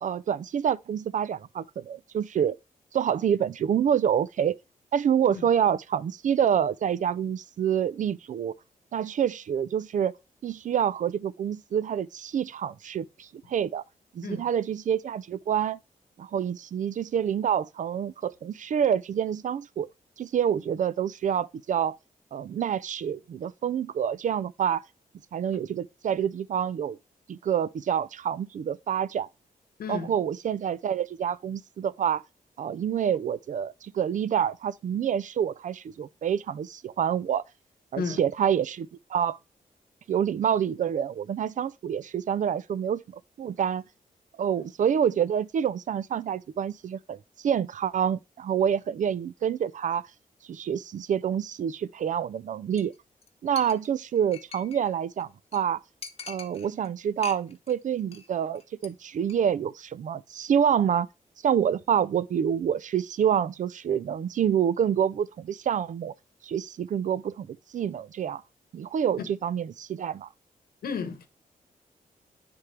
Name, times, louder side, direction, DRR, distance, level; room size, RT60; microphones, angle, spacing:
voice 1, 0.0-2.6 2.9-4.5 4.9-8.5 8.9-10.1 10.4-13.8 14.1-15.8 16.2-19.9 20.2-22.0 22.3-24.8 25.3-27.0 27.3-29.3 29.9-32.2 32.6-37.4 37.9-39.4 40.1-43.0 43.4-43.8 44.4-50.0 50.5-52.9 53.4-55.8 56.3-61.1 61.4-66.1 66.4-68.4 68.7-70.3, right 8 dB, 55° right, 0.4 m, -27 dB
voice 2, 29.8-30.1 38.0-38.2 69.2-69.3 70.8-71.3, left 6 dB, 80° left, 1.1 m, -33 dB
Chink clink, 52.8-53.0 53.2-53.3 53.6-54.9 55.2-55.3 55.5-55.6 56.0-56.9 57.2-57.7 58.0-58.3 58.5-58.9 59.2-59.3, left 5 dB, 40° left, 0.9 m, -43 dB
9.6 x 3.7 x 3.2 m
cardioid pair, 110°, 15 cm